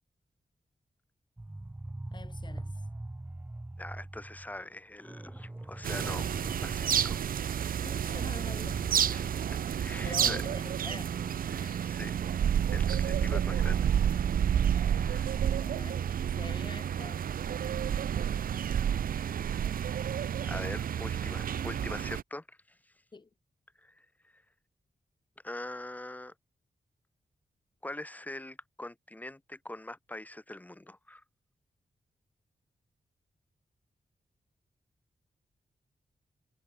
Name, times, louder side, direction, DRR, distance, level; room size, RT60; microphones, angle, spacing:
sound 1, 1.4-7.8 8.1-8.2 8.5-13.1 13.6-15.3, right 2 dB, 15° right, 3.1 m, -44 dB
voice 1, 2.1-2.8 7.8-8.8 10.0-11.1 11.6-11.9 15.5-17.3 18.3-18.7 23.1-23.3, left 4 dB, 30° left, 2.0 m, -46 dB
voice 2, 3.8-6.2 6.6-7.4 9.1-10.4 11.5-14.1 15.0-15.4 19.8-19.9 20.4-22.8 23.8-24.1 24.3-24.4 25.4-26.3 27.8-31.2, left 1 dB, 10° left, 0.9 m, -43 dB
sound 2, 5.8-22.2, right 9 dB, 70° right, 0.6 m, -30 dB
wide cardioid pair, 160°, 15 cm